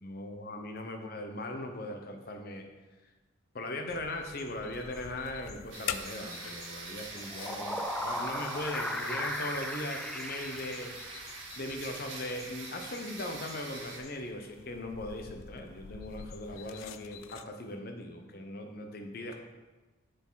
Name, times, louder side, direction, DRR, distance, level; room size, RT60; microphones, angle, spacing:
voice 1, 0.0-2.7 3.5-10.9 11.5-19.3, left 1 dB, 50° left, 4 dB, 0.9 m, -39 dB
sound 1, 3.9-17.5, left 8 dB, 90° left, 0.4 m, -47 dB
sound 2, 5.7-14.0, right 3 dB, 65° right, 1.6 m, -44 dB
sound 3, 7.2-11.6, left 1 dB, 5° left, 0.5 m, -37 dB
7.1 x 7.0 x 4.1 m, 1.2 s
head